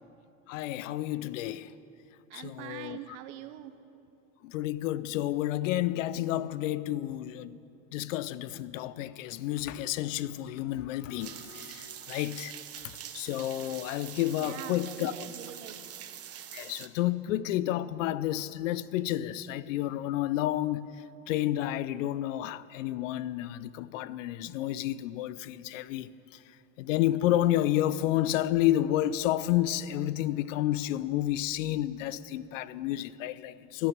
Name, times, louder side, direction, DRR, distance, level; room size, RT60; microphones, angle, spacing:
voice 1, 0.5-1.7 2.3-3.0 4.4-7.6 7.9-12.5 12.8-15.1 16.5-20.9 21.3-26.1 26.8-33.9, left 13 dB, 85° left, 0.6 m, -30 dB
voice 2, 2.3-3.7 14.4-15.8, right 12 dB, 75° right, 1.0 m, -43 dB
sound 1, 11.2-16.9, right 10 dB, 40° right, 1.1 m, -44 dB
12.5 x 12.0 x 8.8 m
supercardioid pair, 90°, 37 cm